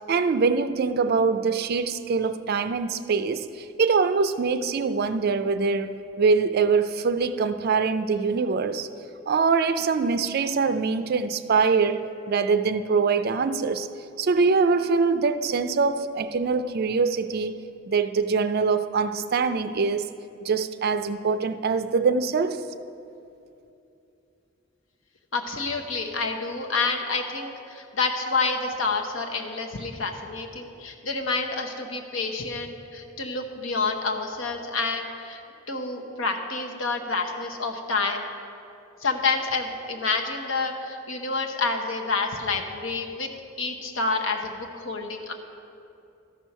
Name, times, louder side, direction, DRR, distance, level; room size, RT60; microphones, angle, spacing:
voice 1, 0.1-8.9 9.3-13.9 14.2-17.5 17.9-20.1 20.4-22.6, right 4 dB, 50° right, 0.4 m, -23 dB
voice 2, 25.3-35.4 35.7-38.2 39.0-43.3 43.6-45.3, left 4 dB, 80° left, 1.0 m, -28 dB
13.0 x 6.2 x 5.5 m
head